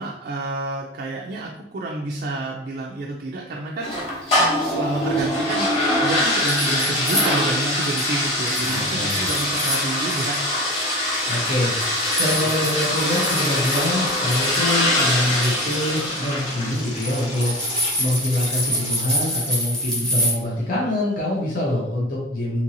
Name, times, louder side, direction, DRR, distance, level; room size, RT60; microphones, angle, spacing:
voice 1, 0.0-10.5 12.4-12.5, right 2 dB, 50° right, -1 dB, 0.3 m, -29 dB
sound 1, 3.8-19.1, left 1 dB, 35° left, 0.9 m, -24 dB
sound 2, 6.1-8.1 8.5-10.4 10.7-20.3, equal, 5° left, 0.8 m, -28 dB
sound 3, 6.7-7.0 7.3-19.7, left 2 dB, 85° left, 0.9 m, -40 dB
voice 2, 8.7-9.3 11.3-22.6, left 1 dB, 50° left, -4 dB, 0.6 m, -25 dB
2.8 x 2.6 x 2.7 m, 0.82 s
head